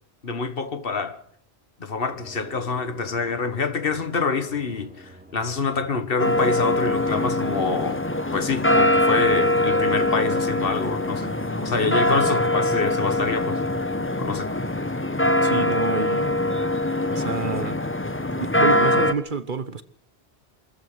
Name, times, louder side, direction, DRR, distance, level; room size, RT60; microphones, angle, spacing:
voice 1, 0.2-1.2 1.8-8.0 8.3-11.3 11.6-13.6 14.2-14.5, left 4 dB, 60° left, 1.8 m, -26 dB
sound 1, 2.0-18.8, equal, 10° right, 3.6 m, -44 dB
sound 2, 6.2-19.1, left 1 dB, 10° left, 1.0 m, -23 dB
voice 2, 15.4-16.6 17.1-17.8 18.4-19.8, right 5 dB, 50° right, 1.2 m, -29 dB
24.0 x 14.5 x 7.9 m
omnidirectional pair, 1.1 m